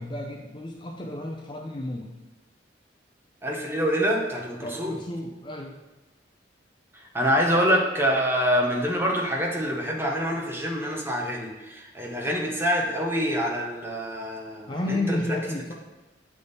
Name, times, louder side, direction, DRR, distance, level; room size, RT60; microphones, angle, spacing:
voice 1, 0.0-2.1 4.6-5.8 14.7-15.7, left 1 dB, 25° left, 0 dB, 0.5 m, -32 dB
voice 2, 3.4-5.0 7.1-15.2, equal, 10° right, -1 dB, 0.8 m, -26 dB
8.3 x 3.5 x 4.0 m, 1.1 s
head